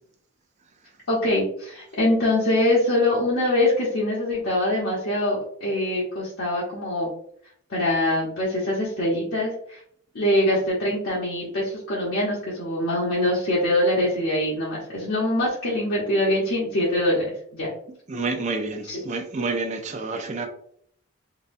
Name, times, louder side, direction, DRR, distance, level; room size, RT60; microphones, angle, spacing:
voice 1, 1.1-7.1 7.7-9.8 10.1-17.3 17.5-17.7 18.8-19.0, left 1 dB, 70° left, 0.8 m, -23 dB
voice 2, 18.1-20.5, right 3 dB, 30° right, 0.4 m, -28 dB
3.9 x 2.2 x 2.5 m
head